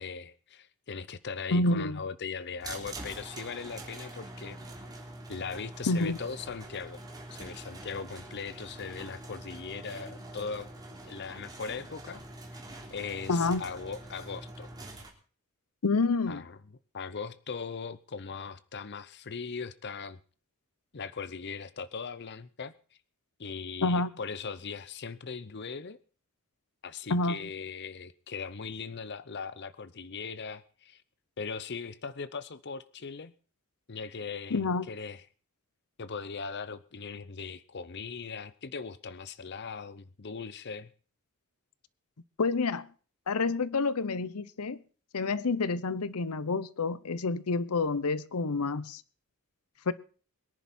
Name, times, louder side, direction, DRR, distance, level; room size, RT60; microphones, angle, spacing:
voice 1, 0.0-4.6 5.3-7.0 7.3-10.7 11.0-12.2 12.5-12.6 12.9-14.7 16.3-16.6 16.9-20.2 20.9-22.7 23.4-26.0 26.8-31.0 31.4-33.3 33.9-35.2 36.0-40.9, left 5 dB, 50° left, 15 dB, 0.7 m, -39 dB
voice 2, 1.5-2.0 5.9-6.2 13.3-13.6 15.8-16.4 23.8-24.1 27.1-27.4 34.5-34.9 42.4-42.9 43.3-44.8 45.1-49.0 49.9-50.0, left 3 dB, 85° left, 18 dB, 0.8 m, -28 dB
sound 1, 2.6-15.1, right 1 dB, 20° right, 3.5 m, -45 dB
23.0 x 10.5 x 4.3 m, 0.40 s
head